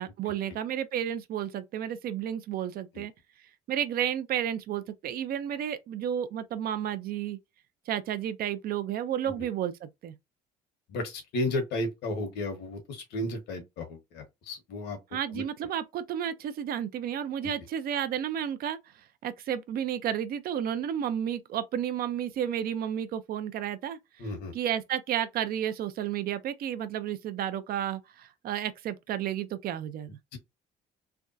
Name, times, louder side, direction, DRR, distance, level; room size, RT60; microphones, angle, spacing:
voice 1, 0.0-3.1 3.7-7.4 7.9-10.1 15.1-18.8 19.2-24.0 24.5-30.2, right 10 dB, 65° right, 0.6 m, -32 dB
voice 2, 10.9-15.0 15.3-15.4 17.4-17.5 24.2-24.5 30.3-30.4, left 1 dB, 85° left, 1.4 m, -33 dB
3.4 x 2.3 x 2.6 m
cardioid pair, 110°, 17 cm